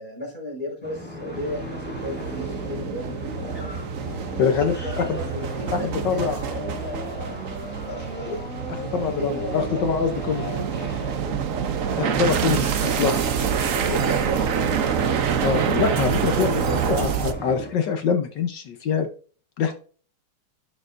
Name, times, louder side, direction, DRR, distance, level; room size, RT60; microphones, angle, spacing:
voice 1, 0.0-3.2 4.3-8.4 8.9-10.0 10.3-10.7 11.2-11.4 13.6-15.0 16.0-17.1, left 1 dB, 25° left, -3 dB, 4.8 m, -34 dB
sound 1, 0.8-17.7, equal, 5° left, 2.1 m, -36 dB
sound 2, 1.3-17.3, right 7 dB, 70° right, 0.8 m, -27 dB
voice 2, 4.4-5.2 5.7-6.6 8.9-10.4 12.0-13.1 15.4-16.5 16.9-19.1 19.6-19.8, left 6 dB, 65° left, 6 dB, 1.4 m, -24 dB
11.0 x 6.8 x 2.6 m, 0.41 s
omnidirectional pair, 2.4 m